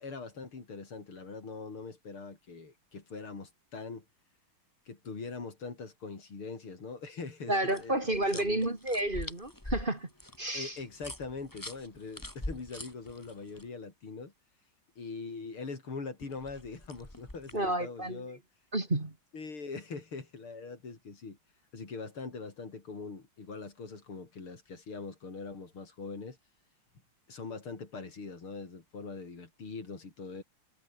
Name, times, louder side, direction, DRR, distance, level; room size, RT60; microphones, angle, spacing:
voice 1, 0.0-4.1 4.9-8.6 10.5-14.3 15.0-18.4 19.3-21.4 21.7-26.4 27.3-30.4, left 4 dB, 85° left, 5.1 m, -42 dB
voice 2, 7.5-10.1 10.4-10.7 17.5-18.2 18.7-19.1, right 1 dB, 25° right, 2.9 m, -31 dB
sound 1, 7.7-13.6 16.2-17.7, left 1 dB, 10° left, 3.0 m, -44 dB
omnidirectional pair, 2.3 m